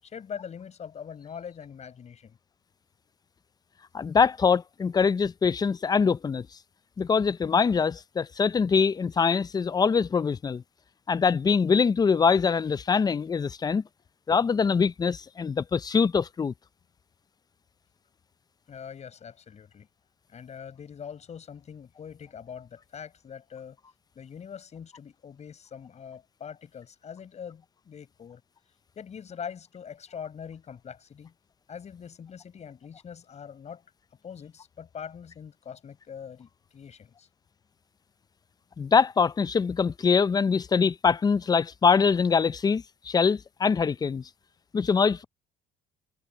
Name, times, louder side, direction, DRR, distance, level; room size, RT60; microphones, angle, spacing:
voice 1, 0.0-2.4 18.7-19.9 20.3-23.8 24.1-28.4 28.9-31.3 31.7-33.8 34.2-37.3, left 7 dB, 40° left, 6.6 m, -43 dB
voice 2, 3.9-6.5 7.0-10.6 11.1-13.8 14.3-16.5 38.8-44.2 44.7-45.2, left 5 dB, 25° left, 0.5 m, -23 dB
cardioid pair, 110°, 17 cm